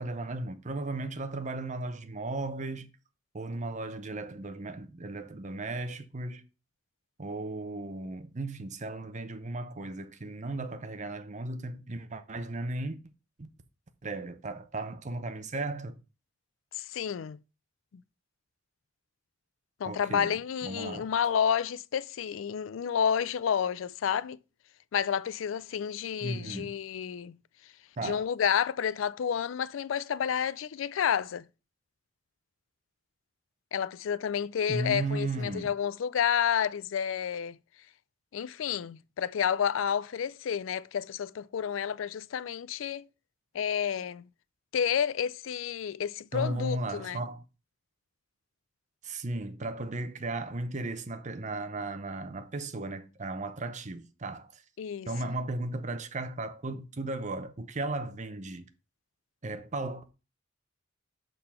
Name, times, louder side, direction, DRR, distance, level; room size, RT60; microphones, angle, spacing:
voice 1, 0.0-2.9 3.3-6.4 7.2-13.0 13.4-13.5 14.0-16.0 19.8-21.1 26.2-26.7 28.0-28.2 34.7-35.7 46.3-47.4 49.0-54.6 55.1-58.7 59.4-60.0, right 2 dB, 40° right, 0.8 m, -36 dB
voice 2, 16.8-17.4 19.8-24.4 24.9-27.4 28.0-31.5 33.7-37.6 38.3-43.1 43.5-44.2 44.7-47.2 54.8-55.1, left 8 dB, 85° left, 0.4 m, -30 dB
6.7 x 3.9 x 5.6 m
head